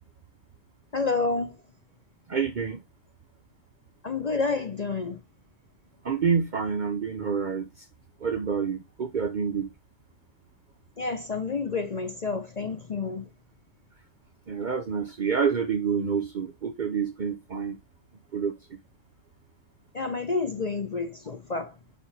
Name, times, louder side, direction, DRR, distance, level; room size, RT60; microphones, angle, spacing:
voice 1, 0.9-1.6 4.0-5.2 11.0-13.3 19.9-21.8, left 4 dB, 40° left, 0.6 m, -29 dB
voice 2, 2.3-2.8 6.0-7.7 8.2-9.7 14.5-17.8 18.3-18.6, right 6 dB, 50° right, 0.6 m, -28 dB
7.3 x 4.8 x 3.2 m
omnidirectional pair, 1.4 m